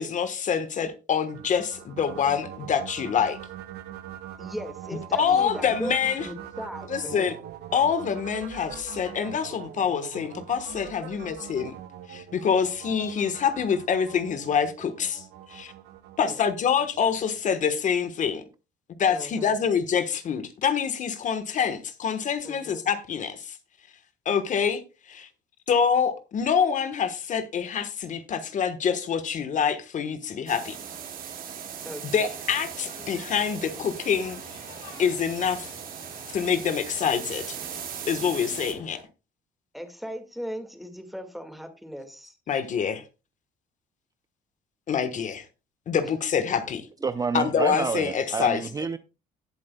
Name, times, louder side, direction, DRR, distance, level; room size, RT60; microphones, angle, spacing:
voice 1, 0.0-3.4 5.1-6.3 6.9-7.3 7.7-11.8 12.1-15.7 16.2-18.4 19.0-23.6 24.2-25.3 25.7-30.8 32.0-34.4 35.0-35.7 36.3-37.6 38.1-39.0 42.5-43.0 44.9-45.5 45.9-46.9 47.3-48.6, left 7 dB, 50° left, 1.2 m, -26 dB
sound 1, 1.3-17.5, right 11 dB, 75° right, 1.2 m, -43 dB
voice 2, 4.4-7.3 11.0-11.3 16.2-16.4 19.1-19.6 22.4-22.9 31.8-32.3 39.7-42.4 46.0-46.1, equal, ahead, 1.8 m, -38 dB
sound 2, 30.5-38.7, right 8 dB, 55° right, 2.1 m, -39 dB
sound 3, 32.3-39.0, left 5 dB, 70° left, 3.8 m, -50 dB
voice 3, 47.0-49.0, right 5 dB, 20° right, 0.5 m, -28 dB
17.0 x 7.5 x 2.2 m
cardioid pair, 110°, 17 cm